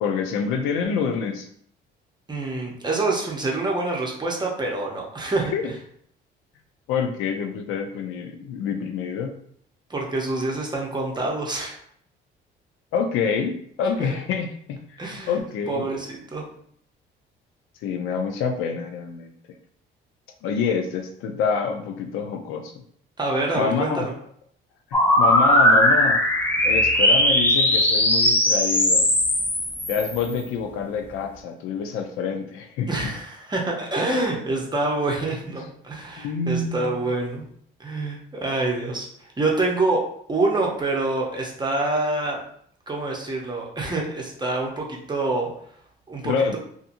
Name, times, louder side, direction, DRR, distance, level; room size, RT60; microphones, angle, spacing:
voice 1, 0.0-1.5 5.5-5.6 6.9-9.3 12.9-15.9 17.8-19.3 20.4-22.7 23.5-24.1 24.9-26.2 26.6-29.0 29.9-33.1 36.2-37.1 46.2-46.6, left 6 dB, 85° left, 5 dB, 0.5 m, -27 dB
voice 2, 2.3-5.5 9.9-11.8 14.0-14.1 15.0-15.4 15.7-16.4 23.2-24.1 32.9-37.4 37.8-40.0 40.3-42.4 42.9-45.5 46.1-46.6, right 2 dB, 20° right, -1 dB, 0.7 m, -26 dB
sound 1, 24.9-30.4, left 1 dB, 10° left, 0.5 m, -19 dB
2.7 x 2.5 x 2.5 m, 0.64 s
supercardioid pair, 80°, 21 cm